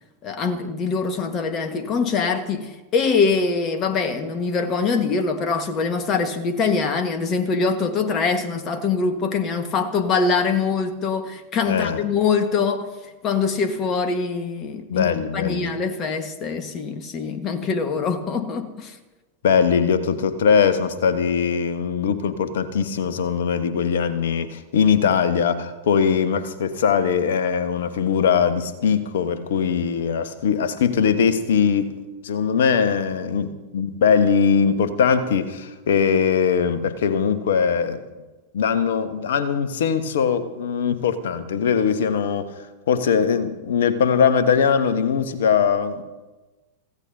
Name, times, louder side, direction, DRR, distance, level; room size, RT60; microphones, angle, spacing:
voice 1, 0.2-12.9 13.2-15.1 15.3-19.0, left 5 dB, 30° left, 1.5 m, -23 dB
voice 2, 11.6-12.0 14.9-15.7 19.4-31.9 32.2-38.0 38.5-42.5 42.9-46.0, left 6 dB, 60° left, 1.3 m, -21 dB
23.5 x 16.0 x 2.8 m
figure-of-eight pair, 90°, 0 cm